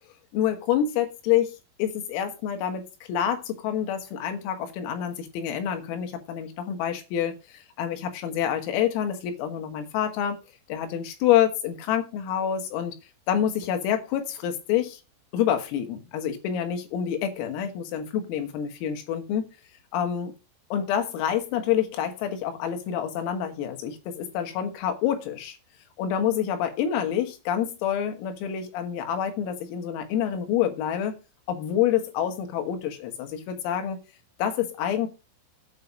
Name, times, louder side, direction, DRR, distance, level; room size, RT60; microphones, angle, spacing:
voice 1, 0.3-10.4 10.7-13.0 13.3-15.0 15.3-19.5 19.9-20.3 20.7-25.6 26.0-31.2 31.5-34.0 34.4-35.1, left 9 dB, 80° left, 5 dB, 4.3 m, -27 dB
9.0 x 5.5 x 7.4 m, 0.29 s
omnidirectional pair, 6.0 m